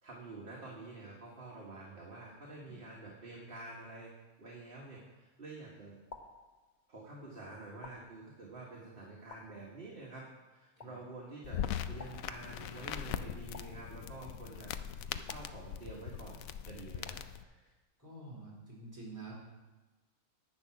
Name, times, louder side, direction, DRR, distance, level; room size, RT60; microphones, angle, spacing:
voice 1, 0.0-4.1 4.4-6.0 6.9-17.7, right 2 dB, 40° right, -4 dB, 1.7 m, -49 dB
sound 1, 5.0-5.5 6.1-7.1 7.8-8.7 9.3-10.1 10.8-11.4 12.0-12.9 13.5-14.4 15.3-16.2 17.1-17.7, left 4 dB, 35° left, 0.8 m, -55 dB
sound 2, 11.4-17.4, left 9 dB, 70° left, 0.9 m, -41 dB
voice 2, 18.0-19.3, right 3 dB, 10° right, -6 dB, 4.2 m, -48 dB
10.5 x 8.6 x 5.9 m, 1.2 s
omnidirectional pair, 1.6 m